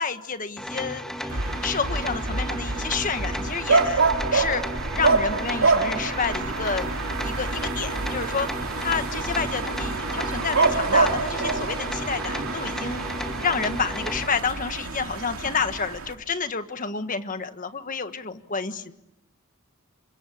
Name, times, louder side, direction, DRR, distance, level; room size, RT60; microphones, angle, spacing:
voice 1, 0.0-4.0 4.3-4.6 4.9-6.9 7.2-13.0 13.4-18.9, left 5 dB, 35° left, 9 dB, 1.5 m, -29 dB
sound 1, 0.6-14.3, equal, ahead, 1.7 m, -35 dB
sound 2, 1.3-16.1, right 3 dB, 75° right, 2.7 m, -26 dB
27.5 x 25.0 x 8.6 m, 0.86 s
head